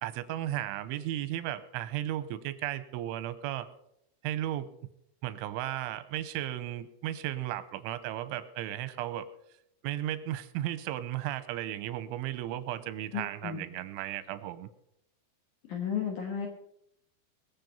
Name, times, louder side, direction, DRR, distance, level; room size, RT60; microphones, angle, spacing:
voice 1, 0.0-3.7 4.2-4.7 5.2-9.3 9.8-14.7, right 13 dB, 90° right, 13 dB, 3.2 m, -35 dB
voice 2, 13.1-13.7 15.6-16.5, left 7 dB, 65° left, 2 dB, 2.0 m, -34 dB
22.0 x 7.6 x 5.4 m, 0.76 s
omnidirectional pair, 5.5 m